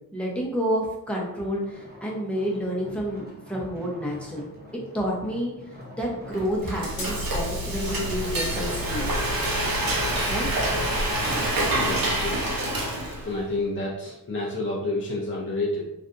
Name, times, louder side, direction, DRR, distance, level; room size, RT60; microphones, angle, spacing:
voice 1, 0.1-4.5 4.9-5.5 6.0-9.1 10.3-10.5, equal, 5° left, -3 dB, 0.8 m, -29 dB
sound 1, 1.2-12.2 12.9-13.0, equal, 30° right, 0.8 m, -42 dB
Frying (food), 6.3-13.4, right 1 dB, 70° right, 0.8 m, -27 dB
sound 2, 7.0-8.0, left 2 dB, 75° left, 0.8 m, -40 dB
voice 2, 11.7-12.4 13.3-15.8, left 2 dB, 35° left, -4 dB, 0.6 m, -29 dB
3.3 x 2.6 x 2.5 m, 0.86 s
wide cardioid pair, 100°, 35 cm